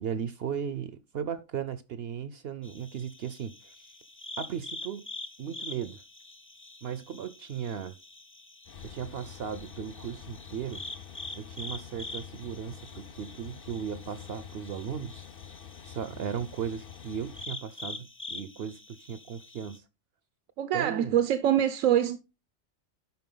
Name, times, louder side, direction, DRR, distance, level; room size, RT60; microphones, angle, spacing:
voice 1, 0.0-3.7 4.4-5.1 5.4-6.0 6.8-7.9 8.8-10.8 11.4-15.2 15.8-19.8 20.7-21.2, right 8 dB, 60° right, 0.7 m, -36 dB
sound 1, 2.6-19.8, left 2 dB, 15° left, 0.4 m, -45 dB
Train, 8.7-17.5, left 8 dB, 60° left, 0.6 m, -47 dB
voice 2, 20.6-22.2, right 10 dB, 85° right, 1.1 m, -24 dB
11.5 x 4.5 x 3.8 m
omnidirectional pair, 1.3 m